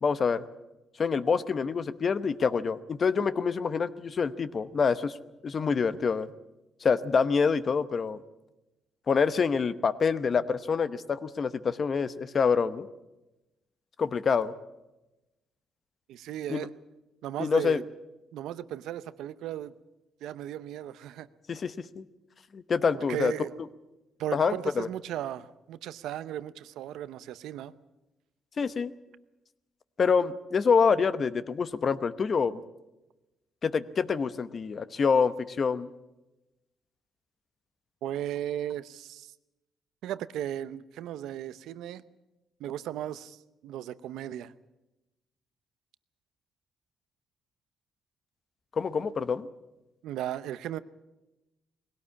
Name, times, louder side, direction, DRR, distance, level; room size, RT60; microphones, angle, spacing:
voice 1, 0.0-0.4 1.0-5.2 5.4-6.3 6.8-8.2 9.1-12.9 14.0-14.5 16.5-16.7 17.4-17.8 21.5-22.0 22.5-23.3 24.3-24.9 28.6-28.9 30.0-32.6 33.6-35.9 48.8-49.5, left 5 dB, 45° left, 14 dB, 0.9 m, -26 dB
voice 2, 16.1-16.7 17.2-17.8 18.3-19.7 20.2-21.3 23.1-23.6 24.2-27.7 38.0-39.3 40.0-42.0 42.6-44.5 50.0-50.8, right 11 dB, 85° right, 15 dB, 0.7 m, -36 dB
20.5 x 17.5 x 8.5 m, 1.0 s
cardioid pair, 90°, 0 cm